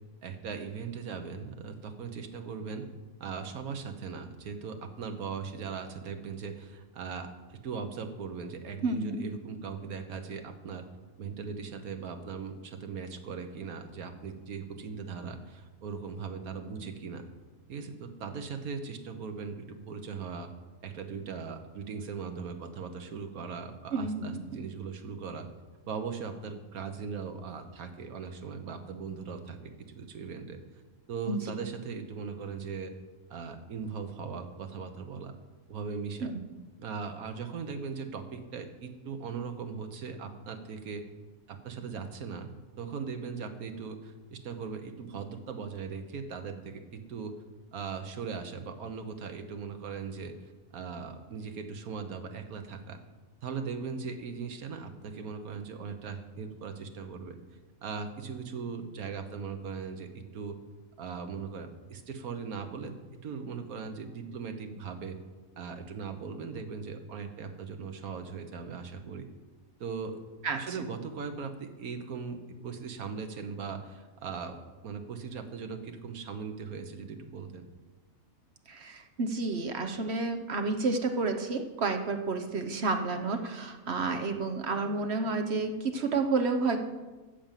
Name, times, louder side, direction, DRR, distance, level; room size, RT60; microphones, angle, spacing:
voice 1, 0.2-2.9 3.2-10.8 11.2-17.2 17.7-20.5 20.8-25.5 25.8-30.6 31.1-32.9 33.3-35.3 35.7-36.3 36.8-41.0 41.5-42.5 42.8-47.3 47.7-50.3 50.7-53.0 53.4-57.4 57.8-60.6 61.0-62.9 63.2-65.2 65.6-69.3 69.8-70.2 70.5-74.6 74.8-77.6, right 5 dB, 85° right, 7 dB, 1.5 m, -39 dB
voice 2, 8.8-9.2 23.9-24.6 31.3-31.4 36.2-36.4 70.4-70.6 78.7-86.8, right 3 dB, 50° right, 6 dB, 1.1 m, -30 dB
14.0 x 5.3 x 7.4 m, 1.2 s
omnidirectional pair, 1.5 m